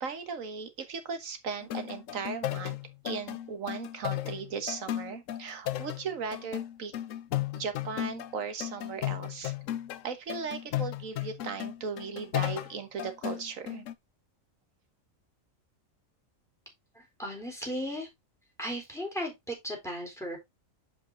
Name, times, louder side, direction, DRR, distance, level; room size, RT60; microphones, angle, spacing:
voice 1, 0.0-2.8 3.0-6.9 7.5-9.5 10.0-13.9, right 5 dB, 80° right, 1.7 m, -37 dB
sound 1, 1.6-8.4 8.6-10.0 10.3-13.9, left 13 dB, 75° left, 1.0 m, -35 dB
voice 2, 16.9-18.1 18.6-20.4, equal, ahead, 3.9 m, -36 dB
7.4 x 5.4 x 3.7 m
omnidirectional pair, 1.4 m